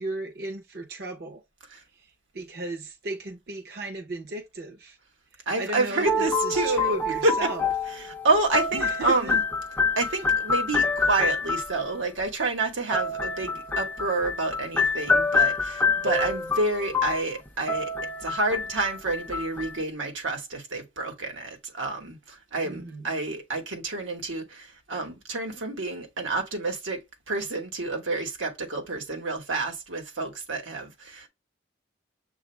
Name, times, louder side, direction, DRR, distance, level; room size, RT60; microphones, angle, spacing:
voice 1, 0.0-1.4 1.9-5.0 5.6-7.7 8.7-9.4 22.6-23.1, right 2 dB, 55° right, 0.7 m, -35 dB
voice 2, 5.5-7.3 8.2-9.4 10.0-17.9 18.2-31.3, right 2 dB, 90° right, 1.2 m, -29 dB
sound 1, 6.1-11.9 12.9-19.8, left 4 dB, 10° left, 0.4 m, -27 dB
6.8 x 2.4 x 3.2 m
head